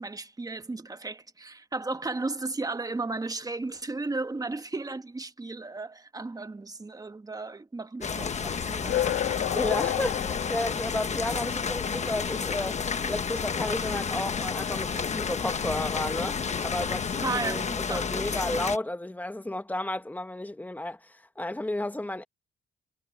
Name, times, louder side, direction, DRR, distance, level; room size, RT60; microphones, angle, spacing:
voice 1, 0.0-9.2 17.2-18.4, right 3 dB, 20° right, 1.4 m, -35 dB
sound 1, 8.0-18.8, left 5 dB, 35° left, 1.3 m, -31 dB
sound 2, 8.2-17.5, left 12 dB, 70° left, 1.7 m, -35 dB
voice 2, 9.5-16.4 16.6-17.6 17.9-22.2, left 1 dB, 10° left, 1.6 m, -32 dB
cardioid pair, 90°, 20 cm